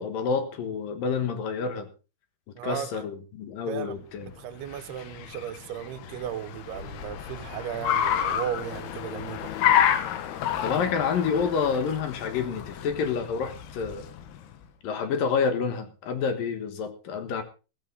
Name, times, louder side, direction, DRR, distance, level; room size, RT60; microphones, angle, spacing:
voice 1, 0.0-1.9 2.6-4.3 10.6-14.1 14.8-17.4, left 6 dB, 70° left, 3.1 m, -28 dB
voice 2, 2.6-3.0 3.7-9.5, right 10 dB, 85° right, 3.0 m, -36 dB
Car, 4.3-14.5, left 10 dB, 90° left, 3.3 m, -30 dB
15.0 x 14.5 x 3.9 m
omnidirectional pair, 4.5 m